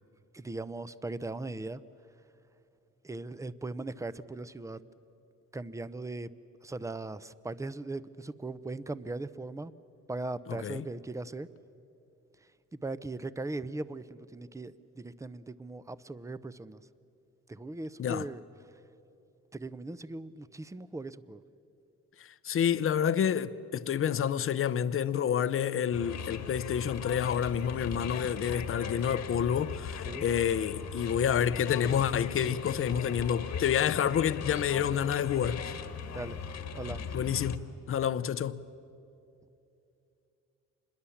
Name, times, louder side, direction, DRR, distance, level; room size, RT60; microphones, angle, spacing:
voice 1, 0.3-1.8 3.0-4.8 5.5-6.3 6.6-9.7 10.1-11.5 12.7-16.8 17.5-18.4 19.5-21.4 30.0-30.2 36.1-36.4 36.7-37.1, right 2 dB, 10° right, 0.7 m, -39 dB
voice 2, 10.5-10.8 18.0-18.3 22.2-35.7 37.1-38.6, left 8 dB, 45° left, 0.7 m, -29 dB
sound 1, 25.9-37.6, left 6 dB, 65° left, 1.5 m, -38 dB
26.5 x 21.5 x 7.2 m
cardioid pair, 90°, 30 cm